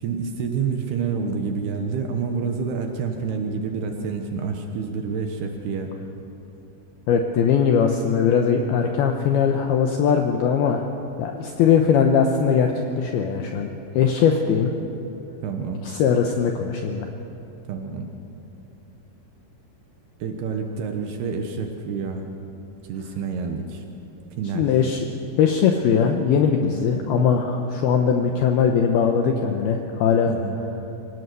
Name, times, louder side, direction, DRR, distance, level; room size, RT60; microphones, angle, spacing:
voice 1, 0.0-5.9 15.4-15.9 17.7-18.1 20.2-22.3 22.9-23.8 24.4-24.7 30.3-30.6, right 5 dB, 70° right, 4 dB, 2.7 m, -28 dB
voice 2, 7.1-10.8 11.2-12.7 13.0-14.7 15.8-17.1 24.5-25.0 25.4-30.3, left 7 dB, 85° left, 3 dB, 2.3 m, -20 dB
24.0 x 17.5 x 6.8 m, 2.9 s
omnidirectional pair, 5.7 m